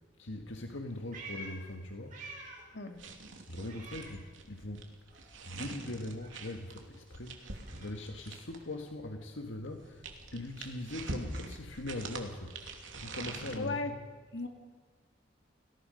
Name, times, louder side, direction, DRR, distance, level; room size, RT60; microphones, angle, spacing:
voice 1, 0.2-2.2 3.5-4.9 5.1-10.0 10.3-12.7 13.0-14.0, left 1 dB, 85° left, 3 dB, 1.8 m, -41 dB
Meow, 0.6-2.8 3.1-4.8 5.1-9.3, right 2 dB, 45° right, 5.8 m, -51 dB
sound 1, 2.9-8.7 9.6-13.6, right 2 dB, 80° right, 2.9 m, -44 dB
voice 2, 13.6-13.9 14.3-14.5, left 3 dB, 65° left, 5 dB, 2.4 m, -35 dB
30.0 x 20.5 x 5.4 m, 1.5 s
head